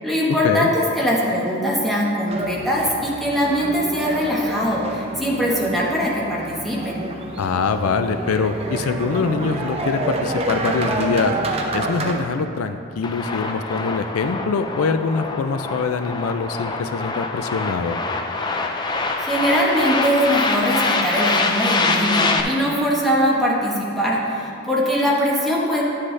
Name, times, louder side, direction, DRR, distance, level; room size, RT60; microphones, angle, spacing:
voice 1, 0.0-7.0 19.2-25.8, equal, ahead, -6 dB, 1.2 m, -21 dB
sound 1, 2.3-12.2, right 2 dB, 30° right, 0.6 m, -28 dB
voice 2, 7.4-11.3 11.7-18.0, left 4 dB, 85° left, 9 dB, 0.4 m, -23 dB
sound 2, 13.0-22.4, left 3 dB, 20° left, 0.4 m, -24 dB
10.0 x 7.5 x 3.3 m, 2.8 s
head